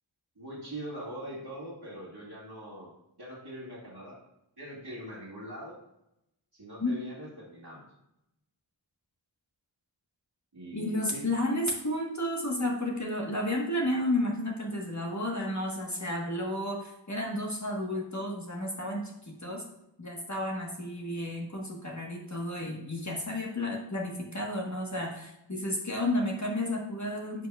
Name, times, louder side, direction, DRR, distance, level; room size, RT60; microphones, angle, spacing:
voice 1, 0.4-2.9 3.2-4.2 4.6-5.8 6.5-7.8 10.5-11.3, right 1 dB, 55° right, -9 dB, 1.9 m, -42 dB
voice 2, 10.7-19.6 20.0-27.5, left 1 dB, 35° left, -1 dB, 1.2 m, -32 dB
9.6 x 5.7 x 2.3 m, 0.85 s
wide cardioid pair, 45°, 46 cm